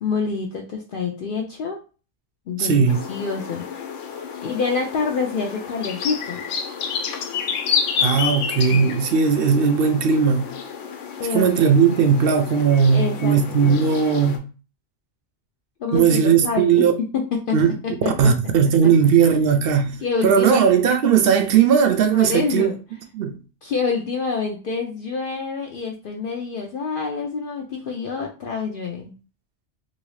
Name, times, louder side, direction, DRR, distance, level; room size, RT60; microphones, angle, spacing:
voice 1, 0.0-1.8 2.5-2.8 3.1-3.6 4.4-6.4 8.6-8.9 11.2-11.5 12.9-13.8 15.8-17.6 17.8-18.3 20.0-20.7 22.1-22.8 23.6-29.1, left 5 dB, 60° left, 0.6 m, -27 dB
voice 2, 2.6-3.0 8.0-10.5 11.3-14.4 15.9-16.9 17.5-17.8 18.2-20.0 20.2-22.7 23.1-23.4, right 6 dB, 60° right, 0.6 m, -17 dB
sound 1, 2.9-14.4, left 7 dB, 80° left, 0.9 m, -30 dB
2.7 x 2.7 x 3.1 m
omnidirectional pair, 1.3 m